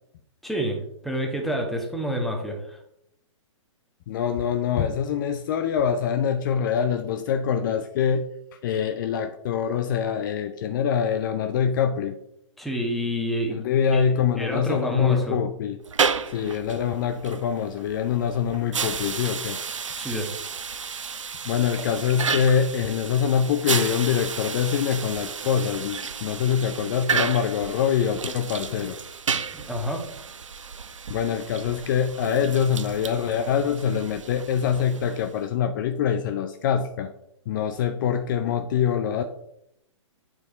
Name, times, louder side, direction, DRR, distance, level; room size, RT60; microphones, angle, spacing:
voice 1, 0.4-2.8 12.6-13.6 13.9-14.0 14.4-15.4 20.0-20.3 29.5-30.1, equal, ahead, 1 dB, 1.2 m, -28 dB
voice 2, 4.1-12.2 13.5-15.8 16.3-19.6 21.4-29.0 31.1-37.1 37.5-39.2, left 8 dB, 40° left, 7 dB, 0.5 m, -24 dB
sound 1, 15.8-35.4, right 6 dB, 75° right, 0.6 m, -32 dB
8.4 x 4.7 x 4.0 m, 0.77 s
figure-of-eight pair, 120°, 16 cm